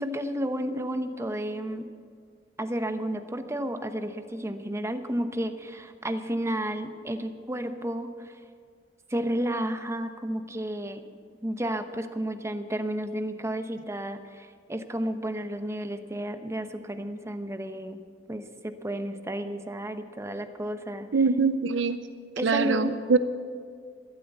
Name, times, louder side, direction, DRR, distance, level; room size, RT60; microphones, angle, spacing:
voice 1, 0.0-1.9 2.6-8.3 9.1-11.0 11.4-18.0 18.3-21.1 22.4-23.0, right 1 dB, 15° right, 8 dB, 0.8 m, -32 dB
voice 2, 21.1-22.0 22.4-23.2, right 4 dB, 85° right, 11 dB, 0.6 m, -23 dB
13.0 x 12.5 x 8.0 m, 2.1 s
head